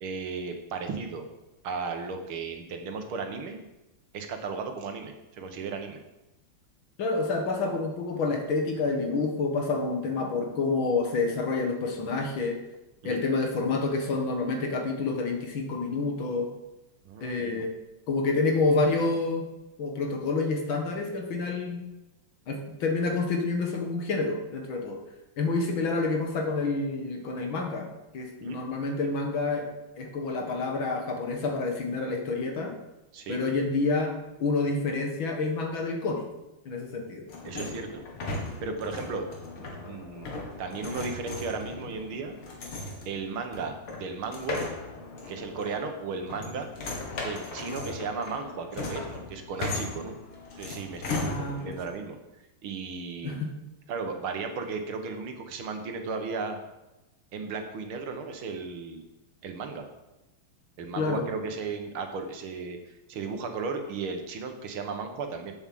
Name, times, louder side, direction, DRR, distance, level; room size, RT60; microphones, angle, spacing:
voice 1, 0.0-1.3 1.6-3.7 4.1-6.0 13.0-13.2 17.1-17.7 28.4-28.6 33.1-33.4 37.4-38.0 38.6-39.3 39.6-42.4 43.1-44.7 45.3-46.7 47.2-50.2 50.5-52.2 52.6-53.4 53.9-56.6 57.3-59.0 59.4-59.9 60.8-65.5, right 4 dB, 80° right, 5 dB, 2.1 m, -35 dB
voice 2, 7.0-12.6 13.0-16.5 17.2-17.7 18.1-19.5 19.8-21.8 22.5-25.0 25.4-27.9 28.1-29.7 30.0-32.7 33.3-34.1 34.4-36.3 36.7-37.3 47.7-47.9 51.2-51.8 53.2-53.5 61.0-61.2, left 3 dB, 70° left, 2 dB, 2.4 m, -28 dB
sound 1, 37.3-51.9, left 2 dB, 85° left, 2.7 m, -37 dB
8.0 x 7.3 x 7.6 m, 0.98 s
omnidirectional pair, 2.3 m